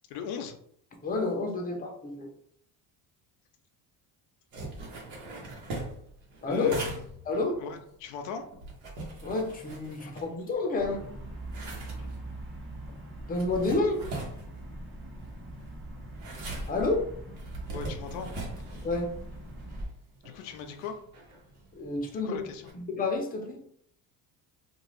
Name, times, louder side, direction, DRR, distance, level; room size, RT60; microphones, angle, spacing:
voice 1, 0.1-0.6 6.5-7.0 7.3-8.5 10.0-10.1 11.7-12.1 13.7-13.9 17.7-18.3 20.2-21.0 22.1-22.7, left 6 dB, 85° left, 6 dB, 0.6 m, -39 dB
voice 2, 1.0-2.3 6.4-6.8 7.3-7.5 9.2-11.1 13.3-14.0 16.7-17.0 18.8-19.1 21.7-22.4 22.7-23.6, left 3 dB, 20° left, 2 dB, 0.6 m, -29 dB
sound 1, 4.5-10.7 11.1-22.7, right 2 dB, 70° right, 1.1 m, -42 dB
sound 2, 10.8-19.9, right 1 dB, 25° right, 1.1 m, -42 dB
2.5 x 2.3 x 3.1 m, 0.66 s
supercardioid pair, 95°, 47 cm